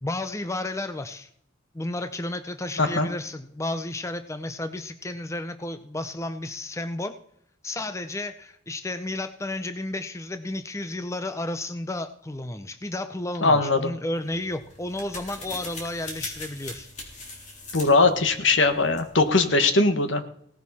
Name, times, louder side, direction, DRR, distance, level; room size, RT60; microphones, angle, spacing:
voice 1, 0.0-1.3 1.7-7.1 7.6-16.9, left 2 dB, 15° left, 9 dB, 0.6 m, -32 dB
voice 2, 2.8-3.1 13.4-13.9 17.7-20.2, left 3 dB, 75° left, 9 dB, 1.5 m, -20 dB
sound 1, 14.2-19.5, left 2 dB, 40° left, 3.7 m, -41 dB
17.5 x 10.5 x 4.2 m, 0.71 s
head